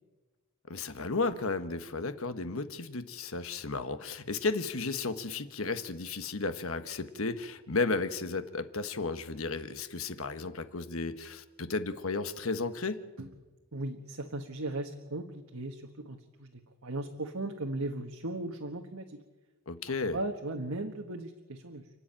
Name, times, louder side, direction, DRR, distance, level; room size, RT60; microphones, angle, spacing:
voice 1, 0.7-13.0 19.7-20.2, left 3 dB, 75° left, 10 dB, 1.3 m, -33 dB
voice 2, 13.7-19.2 20.1-21.9, right 2 dB, 80° right, 3 dB, 1.5 m, -37 dB
30.0 x 10.0 x 8.9 m, 1.2 s
head